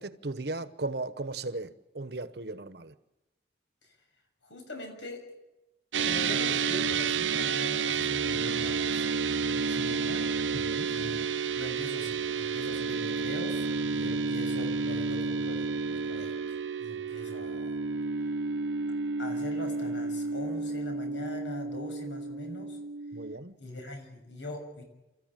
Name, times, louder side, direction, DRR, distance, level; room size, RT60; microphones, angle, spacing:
voice 1, 0.0-2.9 10.5-10.9 13.9-14.2 23.1-23.6, right 2 dB, 60° right, 1.1 m, -37 dB
voice 2, 4.4-5.2 6.0-9.0 9.4-10.2 10.9-11.2 11.5-13.6 13.9-16.3 16.8-17.7 19.2-22.8 23.6-24.8, left 1 dB, 80° left, 6.9 m, -42 dB
sound 1, 5.9-23.3, right 5 dB, 85° right, 0.8 m, -31 dB
29.0 x 14.5 x 9.0 m
head